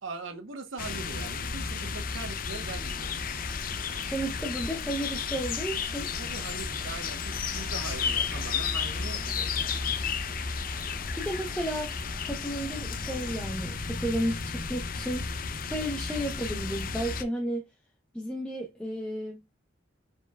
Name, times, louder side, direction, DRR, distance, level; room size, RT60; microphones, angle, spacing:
voice 1, 0.0-3.1 6.2-10.0, right 4 dB, 80° right, 0.9 m, -41 dB
sound 1, 0.8-17.2, left 5 dB, 45° left, 0.5 m, -33 dB
sound 2, 2.6-13.4, right 1 dB, 40° right, 2.0 m, -48 dB
voice 2, 4.0-6.1 10.8-11.9 12.2-15.3 15.6-17.7 18.1-19.4, right 1 dB, 5° left, 0.6 m, -33 dB
4.8 x 4.4 x 2.3 m
head